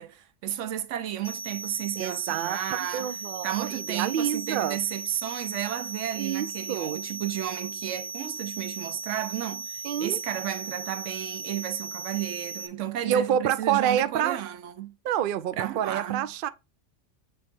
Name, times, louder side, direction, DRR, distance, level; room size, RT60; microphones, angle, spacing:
voice 1, 0.0-3.2 3.4-14.9 15.5-16.3, right 11 dB, 80° right, 1.0 m, -33 dB
sound 1, 1.2-12.7, right 3 dB, 15° left, 0.7 m, -37 dB
voice 2, 2.0-4.8 6.2-7.0 9.8-10.2 13.1-14.4 15.0-16.5, right 9 dB, 60° right, 0.6 m, -28 dB
7.6 x 3.2 x 4.4 m
omnidirectional pair, 1.2 m